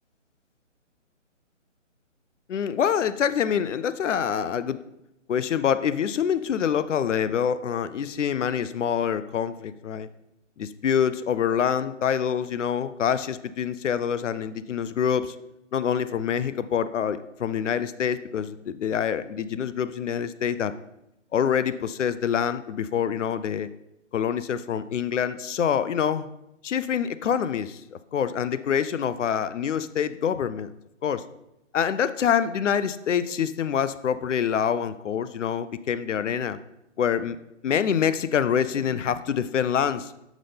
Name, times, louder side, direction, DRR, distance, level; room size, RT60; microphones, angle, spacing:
voice 1, 2.5-4.8 5.3-10.1 10.6-15.4 15.7-20.7 21.3-23.7 24.1-26.3 26.6-27.8 28.1-30.7 31.0-31.2 31.7-36.6 37.0-37.4 37.6-40.1, left 8 dB, 70° left, 14 dB, 0.5 m, -26 dB
6.1 x 5.4 x 3.4 m, 0.86 s
hypercardioid pair, 160°, 38 cm